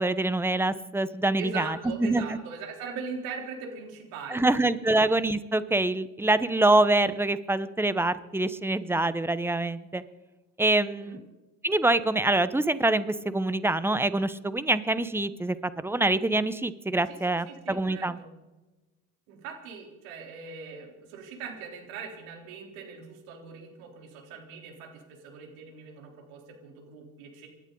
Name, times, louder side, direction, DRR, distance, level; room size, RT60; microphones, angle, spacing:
voice 1, 0.0-2.2 4.3-10.0 10.6-11.2 11.6-18.2, right 2 dB, 5° right, 14 dB, 1.0 m, -25 dB
voice 2, 1.4-5.0 10.9-11.2 17.1-17.2 17.5-18.3 19.3-27.5, right 5 dB, 75° right, 2 dB, 3.8 m, -41 dB
28.0 x 11.5 x 4.0 m, 1.1 s
hypercardioid pair, 70°, 41 cm